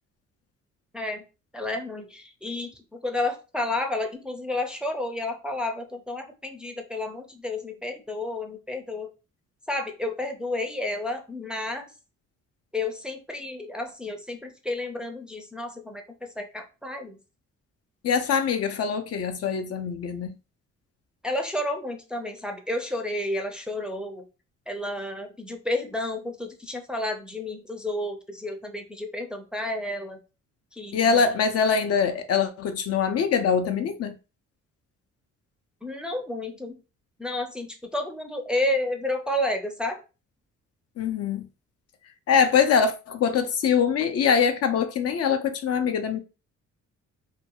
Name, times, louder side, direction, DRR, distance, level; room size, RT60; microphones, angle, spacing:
voice 1, 0.9-1.2 1.5-9.1 9.7-11.9 12.7-17.2 21.2-24.3 24.7-30.2 30.7-31.2 35.8-36.8 37.2-40.0, left 1 dB, 5° right, 0.4 m, -31 dB
voice 2, 18.0-20.3 30.9-34.1 41.0-41.4 42.3-46.2, left 6 dB, 55° left, 0.5 m, -23 dB
2.5 x 2.2 x 2.8 m
cardioid pair, 90°, 30 cm